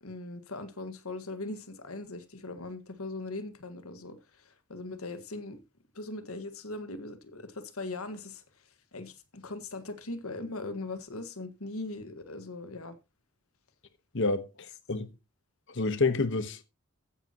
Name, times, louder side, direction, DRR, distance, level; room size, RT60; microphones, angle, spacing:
voice 1, 0.0-5.6 6.0-13.0, left 2 dB, 85° left, 1.7 m, -40 dB
voice 2, 14.1-14.5 14.9-15.1 15.7-16.6, left 3 dB, 60° left, 1.2 m, -28 dB
15.5 x 10.5 x 3.0 m
head